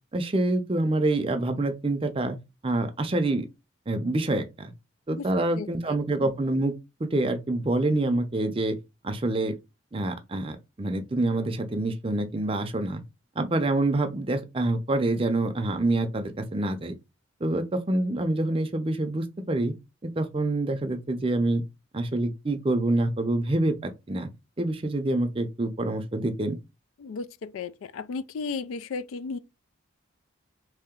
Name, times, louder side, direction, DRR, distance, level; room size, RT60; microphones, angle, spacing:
voice 1, 0.1-2.4 2.6-3.5 3.9-4.7 5.1-6.7 7.0-8.8 9.0-9.6 9.9-13.0 13.4-16.9 17.4-19.7 20.0-21.6 21.9-24.3 24.6-26.6, right 2 dB, 25° right, 0.5 m, -26 dB
voice 2, 5.6-6.0 27.0-29.4, left 4 dB, 85° left, 0.4 m, -35 dB
3.1 x 2.8 x 3.6 m
head